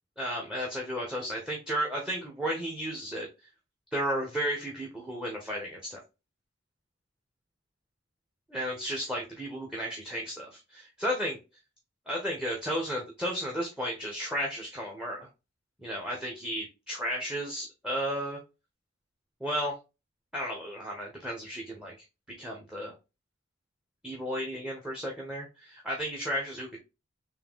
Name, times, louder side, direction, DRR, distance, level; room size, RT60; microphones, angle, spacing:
voice 1, 0.2-3.3 3.9-6.0 8.5-11.4 12.1-15.3 15.8-18.4 19.4-19.7 20.3-21.9 22.4-22.9 24.0-26.8, equal, 5° right, -1 dB, 0.8 m, -33 dB
3.8 x 2.7 x 3.5 m, 0.27 s
head